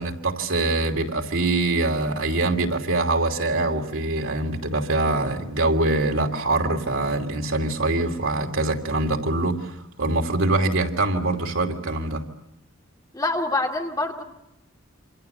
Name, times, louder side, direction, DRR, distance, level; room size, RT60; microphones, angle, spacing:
voice 1, 0.0-12.2, right 2 dB, 90° right, 2.8 m, -24 dB
voice 2, 13.1-14.2, left 2 dB, 20° left, 2.6 m, -25 dB
27.5 x 26.5 x 6.8 m
head